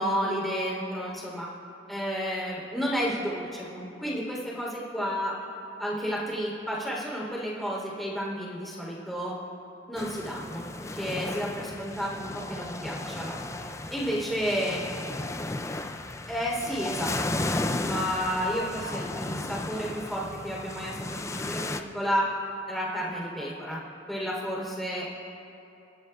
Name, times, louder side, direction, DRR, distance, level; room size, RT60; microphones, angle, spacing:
voice 1, 0.0-1.5 1.9-5.3 5.8-9.3 9.9-10.7 11.0-13.4 13.9-14.8 16.3-17.4 17.8-22.3 22.7-23.8 24.1-25.1, equal, ahead, -6 dB, 3.4 m, -31 dB
sound 1, 10.0-21.8, left 2 dB, 15° left, 0.4 m, -34 dB
28.0 x 13.0 x 2.4 m, 2.9 s
head